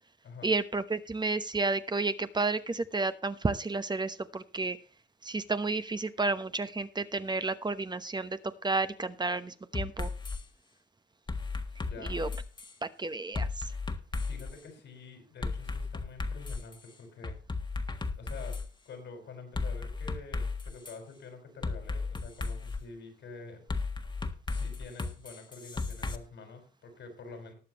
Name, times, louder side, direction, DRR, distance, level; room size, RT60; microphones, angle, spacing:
voice 1, 0.4-4.8 5.2-10.1 12.1-12.3 12.8-13.5, right 3 dB, 25° right, 11 dB, 1.0 m, -31 dB
sound 1, 9.7-10.4 11.3-12.7 13.3-14.5 15.4-16.7 17.2-18.7 19.6-20.9 21.6-22.8 23.7-26.2, left 3 dB, 25° left, 1.5 m, -34 dB
voice 2, 11.8-12.2 14.3-17.4 18.2-18.6 18.9-23.6 24.5-27.5, left 4 dB, 85° left, 4 dB, 5.5 m, -47 dB
19.5 x 7.4 x 3.0 m, 0.38 s
cardioid pair, 115°, 18 cm